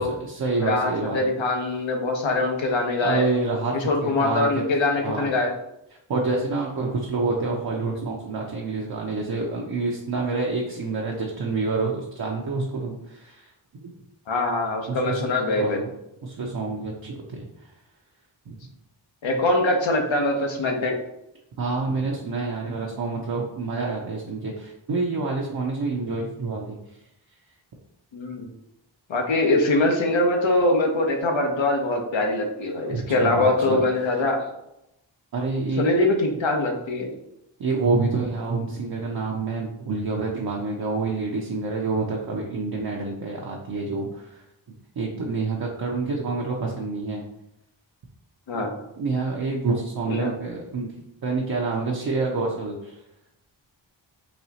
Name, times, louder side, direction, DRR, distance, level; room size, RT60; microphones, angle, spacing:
voice 1, 0.1-1.2 3.0-3.7 4.0-4.6 5.0-5.3 6.1-13.4 13.8-13.9 14.9-15.9 16.2-17.5 18.5-18.6 21.6-26.8 32.9-33.8 35.3-36.0 37.6-44.1 44.3-44.4 45.0-47.2 49.0-50.9 51.2-52.9, right 3 dB, 50° right, -2 dB, 0.6 m, -27 dB
voice 2, 0.6-3.3 3.7-5.5 14.3-15.8 19.2-21.0 28.1-28.5 29.1-34.4 35.8-37.1 48.5-48.7 50.1-50.3, left 2 dB, 75° left, 2 dB, 0.9 m, -23 dB
4.2 x 2.3 x 2.8 m, 0.84 s
cardioid pair, 60°, 47 cm